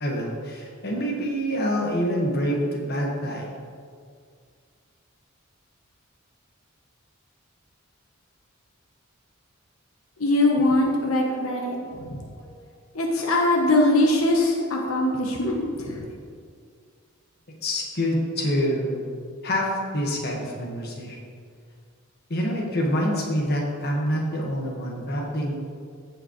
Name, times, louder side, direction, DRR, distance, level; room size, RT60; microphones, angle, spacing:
voice 1, 0.0-3.5 17.6-19.0 19.4-21.2 22.3-25.6, equal, 50° left, -2 dB, 1.5 m, -26 dB
voice 2, 10.2-11.8 12.9-16.1, left 1 dB, 90° left, 0 dB, 1.0 m, -22 dB
15.0 x 5.1 x 3.1 m, 2.1 s
head